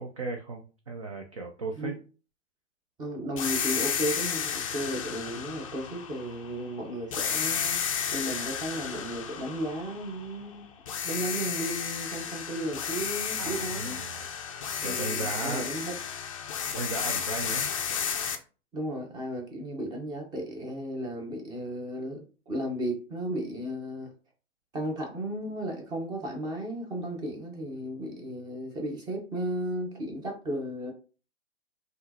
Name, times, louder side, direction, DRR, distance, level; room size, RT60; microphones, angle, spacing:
voice 1, 0.0-1.9 13.4-14.3 14.8-15.7 16.7-17.7, right 3 dB, 30° right, 0.3 m, -36 dB
voice 2, 3.0-7.8 8.1-10.7 11.0-14.0 14.8-16.0 18.7-24.1 24.7-30.9, right 1 dB, 10° right, 0.8 m, -34 dB
sound 1, 3.4-6.6 7.1-10.5 10.9-18.4, left 7 dB, 30° left, 0.4 m, -32 dB
5.6 x 2.5 x 2.8 m
figure-of-eight pair, 120°, 37 cm